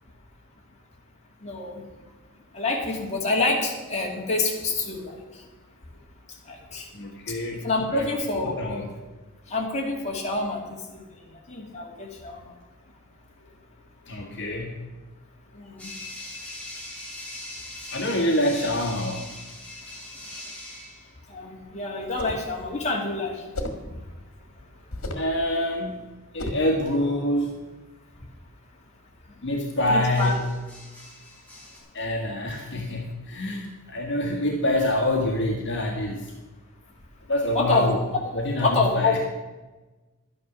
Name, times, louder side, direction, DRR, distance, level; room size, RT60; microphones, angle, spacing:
voice 1, 1.4-1.8 2.5-5.5 6.3-6.9 7.3-7.4 7.6-8.8 9.5-12.5 15.5-15.9 21.3-23.4 23.9-24.0 29.9-30.4 37.5-37.9 38.6-39.1, left 3 dB, 35° left, -1 dB, 2.4 m, -27 dB
voice 2, 6.9-7.7 7.9-8.1 8.4-8.8 14.1-14.7 17.9-19.3 25.1-26.0 26.3-27.6 29.4-30.4 31.9-36.3 37.3-38.0 38.3-39.2, left 1 dB, 60° left, 0 dB, 1.6 m, -26 dB
sound 1, 15.8-21.1 24.6-24.9 30.1-31.8, left 1 dB, 5° left, 3.8 m, -41 dB
sound 2, 22.0-22.5 23.5-23.9 24.9-25.3 26.4-26.7, left 1 dB, 80° left, 1.7 m, -32 dB
12.0 x 9.7 x 6.2 m, 1.2 s
head